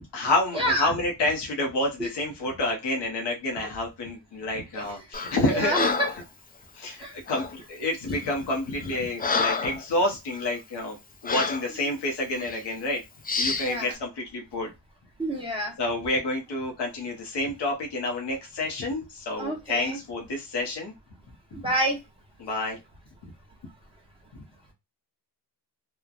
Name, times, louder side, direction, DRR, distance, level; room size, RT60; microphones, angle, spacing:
voice 1, 0.1-5.7 6.7-11.0 11.2-13.0 13.4-14.7 15.8-20.9 21.5-21.6 22.4-22.8, left 2 dB, 70° left, 1 dB, 0.9 m, -29 dB
Breathing, 5.1-5.4 5.7-6.2 7.3-7.5 8.2-8.4 8.8-9.8 10.3-10.5 11.3-11.7 12.4-12.6 13.3-13.7, left 4 dB, 20° left, 0.4 m, -28 dB
voice 2, 5.5-6.1 7.0-7.1 13.6-13.9 15.2-15.7 19.4-20.0 21.6-22.0, right 1 dB, 10° right, -2 dB, 0.8 m, -27 dB
3.1 x 2.1 x 2.3 m, 0.22 s
wide cardioid pair, 125°, 43 cm